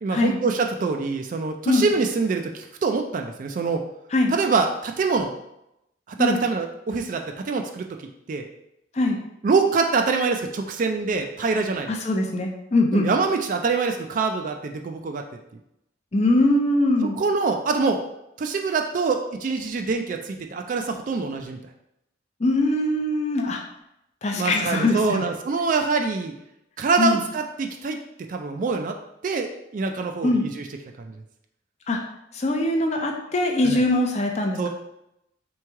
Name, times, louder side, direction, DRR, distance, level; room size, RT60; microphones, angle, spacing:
voice 1, 0.0-3.8 4.3-5.3 6.2-7.9 8.3-8.5 9.4-11.9 12.9-15.2 17.0-18.0 18.4-21.6 24.3-26.3 26.8-28.0 28.3-29.0 29.2-30.6 33.6-33.8 34.6-34.7, right 4 dB, 45° right, 4 dB, 0.3 m, -24 dB
voice 2, 11.9-13.1 16.1-17.1 22.4-23.6 24.2-25.2 27.0-27.2 30.2-30.4 31.9-32.0 32.3-34.7, left 2 dB, 35° left, 2 dB, 0.5 m, -22 dB
3.4 x 3.1 x 4.5 m, 0.84 s
head